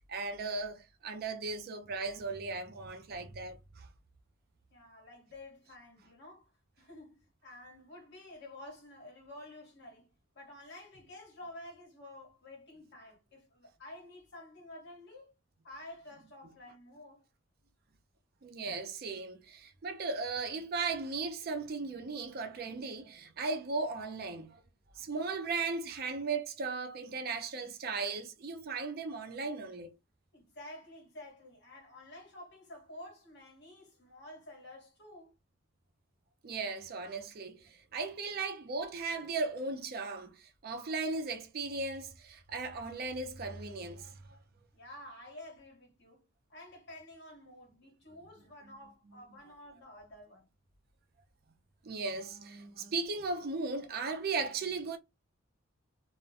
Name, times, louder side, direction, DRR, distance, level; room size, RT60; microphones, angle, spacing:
voice 1, 0.1-3.9 18.4-24.6 25.0-29.9 36.4-44.4 51.8-55.0, right 4 dB, 50° right, 0.4 m, -37 dB
voice 2, 4.7-6.5 6.8-10.1 10.3-15.3 15.6-17.3 30.3-35.3 44.7-50.5, left 1 dB, 55° left, 1.3 m, -51 dB
2.4 x 2.1 x 2.7 m
head